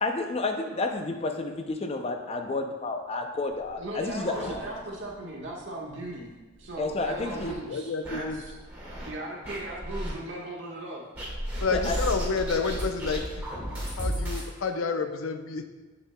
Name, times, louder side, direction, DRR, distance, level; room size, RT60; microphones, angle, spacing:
voice 1, 0.0-4.6 6.8-7.5 11.7-12.0, left 3 dB, 30° left, 5 dB, 0.4 m, -30 dB
sound 1, 3.6-5.1 5.5-5.6 5.9-6.0 6.6-7.5 8.0-9.1 9.4-10.1 11.2-14.5, equal, 10° right, 1.6 m, -34 dB
voice 2, 3.7-8.6 9.0-11.0, right 1 dB, 60° right, -3 dB, 1.4 m, -38 dB
voice 3, 7.3-8.4 11.6-13.4 14.0-15.7, left 4 dB, 85° left, 7 dB, 0.5 m, -30 dB
7.1 x 6.9 x 2.2 m, 1.2 s
head